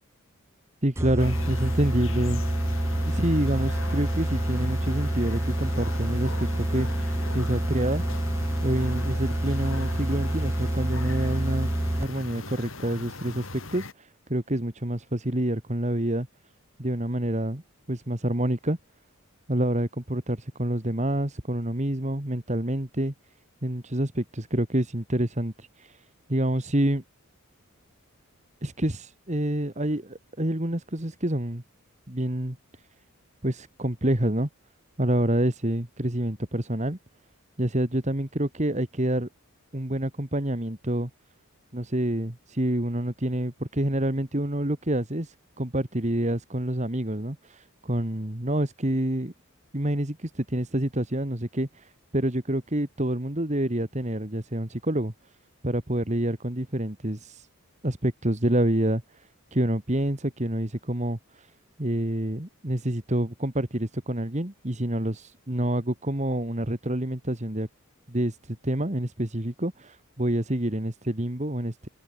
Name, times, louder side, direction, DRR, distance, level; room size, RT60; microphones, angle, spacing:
voice 1, 0.8-2.4 3.0-8.0 8.6-11.7 12.0-16.3 16.8-17.6 17.9-18.8 19.5-23.1 23.6-26.0 26.3-27.0 28.6-31.6 32.1-32.6 33.4-34.5 35.0-37.0 37.6-39.3 39.7-41.1 41.7-49.3 49.7-55.1 55.6-57.5 57.8-61.5 61.8-67.7 68.1-71.9, right 1 dB, 30° right, 2.2 m, -27 dB
sound 1, 1.0-12.3, right 1 dB, 10° right, 0.6 m, -27 dB
sound 2, 1.2-13.9, left 2 dB, 60° left, 5.7 m, -39 dB
open air
head